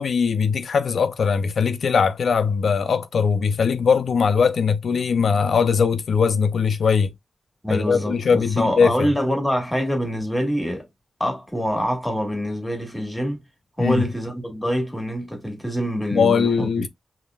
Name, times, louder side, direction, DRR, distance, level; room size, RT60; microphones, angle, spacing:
voice 1, 0.0-7.1 7.7-9.1 13.8-14.0 16.1-16.9, left 6 dB, 80° left, 0.6 m, -20 dB
voice 2, 7.6-10.8 11.2-13.4 13.8-16.9, equal, 10° left, 1.6 m, -25 dB
5.3 x 2.9 x 2.3 m
wide cardioid pair, 120°, 0 cm